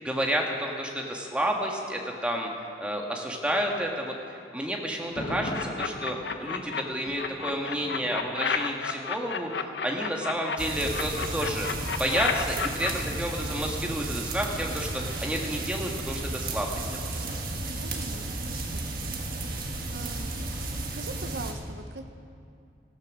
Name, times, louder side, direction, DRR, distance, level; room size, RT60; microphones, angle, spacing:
voice 1, 0.0-2.5 2.8-11.7 11.9-16.8 17.1-17.2, equal, 5° right, 0 dB, 1.5 m, -30 dB
Thunder, 5.0-8.9 9.2-9.3, left 1 dB, 50° left, 1.4 m, -40 dB
sound 1, 5.5-6.8 7.2-10.6 10.9-12.9, left 6 dB, 80° left, 0.8 m, -31 dB
sound 2, 10.6-21.5, right 2 dB, 55° right, 1.5 m, -33 dB
voice 2, 17.7-19.2 19.9-20.3 20.8-22.1, right 3 dB, 75° right, 7 dB, 0.8 m, -42 dB
14.5 x 14.5 x 6.1 m, 2.5 s
head